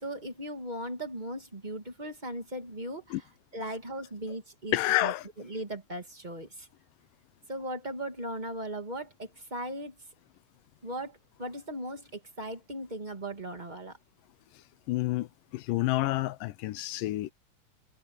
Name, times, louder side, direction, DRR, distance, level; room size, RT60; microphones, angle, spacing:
voice 1, 0.0-3.2 3.5-4.8 5.0-6.7 7.5-9.9 10.8-14.0, right 1 dB, 15° right, 2.0 m, -38 dB
voice 2, 4.7-5.3 14.9-17.3, left 17 dB, 80° left, 2.3 m, -29 dB
omnidirectional pair, 3.8 m